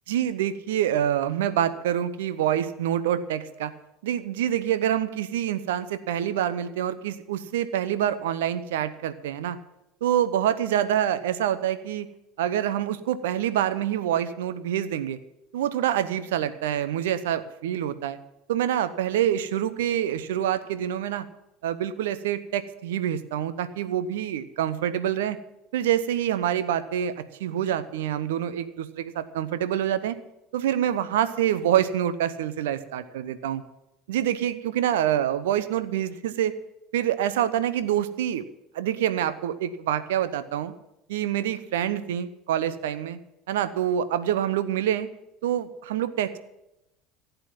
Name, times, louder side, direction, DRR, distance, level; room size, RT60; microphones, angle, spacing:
voice 1, 0.1-3.7 4.0-9.6 10.0-12.1 12.4-15.2 15.5-18.2 18.5-21.2 21.6-25.4 25.7-30.2 30.5-33.6 34.1-36.5 36.9-38.4 38.7-40.7 41.1-43.2 43.5-45.1 45.4-46.4, right 10 dB, 70° right, 13 dB, 0.9 m, -26 dB
15.5 x 8.2 x 7.2 m, 0.89 s
figure-of-eight pair, 70°, 0 cm